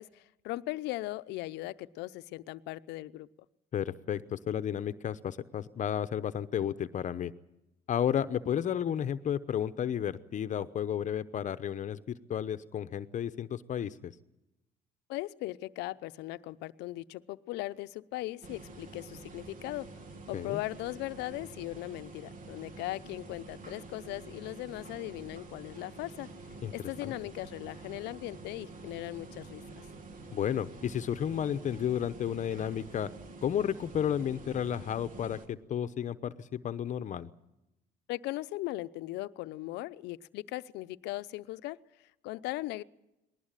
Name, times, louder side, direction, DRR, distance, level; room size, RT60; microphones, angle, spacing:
voice 1, 0.0-3.3 15.1-19.9 20.3-26.3 26.7-29.6 38.1-42.8, left 17 dB, 90° left, 14 dB, 0.8 m, -38 dB
voice 2, 3.7-7.3 7.9-14.1 20.3-20.6 26.6-26.7 27.0-27.1 30.3-33.1 33.4-37.3, left 9 dB, 45° left, 12 dB, 0.9 m, -32 dB
sound 1, 18.4-35.5, right 3 dB, 55° right, 2.4 m, -48 dB
20.5 x 18.5 x 9.0 m, 0.91 s
cardioid pair, 110°, 17 cm